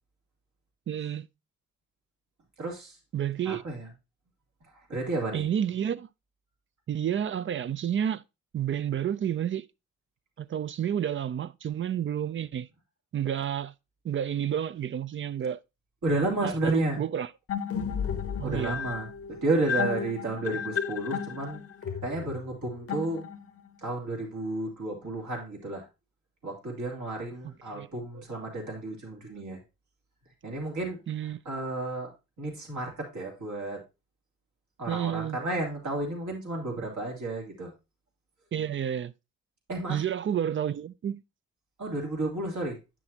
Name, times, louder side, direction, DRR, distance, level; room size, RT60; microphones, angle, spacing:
voice 1, 0.9-1.3 3.1-3.6 5.3-6.1 6.9-8.2 8.5-9.7 10.4-12.7 13.1-13.7 14.0-15.6 16.4-17.3 18.4-18.8 27.7-27.9 28.1-28.2 31.1-31.4 34.9-35.4 38.5-39.1 39.9-41.2, right 9 dB, 40° right, 0.4 m, -30 dB
voice 2, 2.6-3.0 3.4-3.9 4.9-5.5 16.0-17.0 18.4-19.1 19.4-21.6 22.0-23.2 23.8-25.8 26.4-29.6 30.4-31.0 31.4-32.1 32.4-33.8 34.8-37.7 39.7-40.0 41.8-42.8, right 2 dB, 70° right, 3.1 m, -32 dB
sound 1, 17.5-23.7, left 7 dB, 45° left, 0.7 m, -33 dB
8.9 x 6.1 x 2.8 m
cardioid pair, 65°, 31 cm